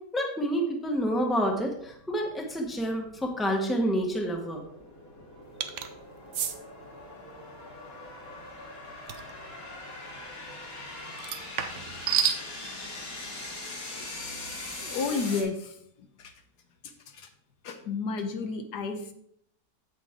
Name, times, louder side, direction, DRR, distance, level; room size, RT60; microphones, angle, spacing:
voice 1, 0.1-4.6, equal, ahead, 1 dB, 1.1 m, -28 dB
sound 1, 0.9-15.4, left 2 dB, 60° left, 2.4 m, -42 dB
sound 2, 5.6-5.9 6.3-6.6 9.1-9.3 11.2-12.4, right 8 dB, 60° right, 0.9 m, -29 dB
voice 2, 14.8-15.8 16.2-16.3 17.1-17.3 17.6-19.1, left 4 dB, 75° left, 6 dB, 1.5 m, -32 dB
8.5 x 8.2 x 3.7 m, 0.72 s
omnidirectional pair, 1.8 m